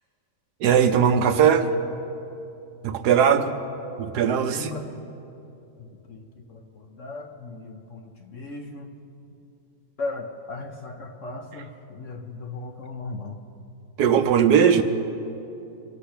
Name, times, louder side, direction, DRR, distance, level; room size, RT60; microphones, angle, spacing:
voice 1, 0.6-1.7 2.8-3.5 4.0-4.7 14.0-14.8, right 8 dB, 70° right, 8 dB, 1.2 m, -19 dB
voice 2, 4.4-5.0 5.8-8.9 10.0-13.5 14.6-14.8, left 3 dB, 50° left, 4 dB, 1.1 m, -37 dB
25.0 x 8.4 x 5.8 m, 2.8 s
omnidirectional pair, 1.9 m